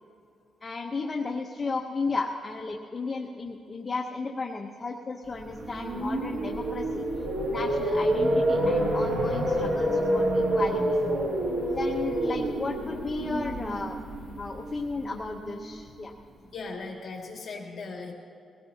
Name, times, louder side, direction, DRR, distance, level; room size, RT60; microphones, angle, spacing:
voice 1, 0.6-7.0 7.5-10.8 11.7-14.0 14.4-16.1, left 3 dB, 20° left, 1 dB, 0.8 m, -34 dB
sound 1, 5.5-15.6, right 1 dB, 80° right, 3.0 m, -28 dB
voice 2, 16.5-18.1, left 3 dB, 45° left, -1 dB, 2.1 m, -38 dB
21.5 x 17.5 x 2.8 m, 2.6 s
wide cardioid pair, 165°, 0 cm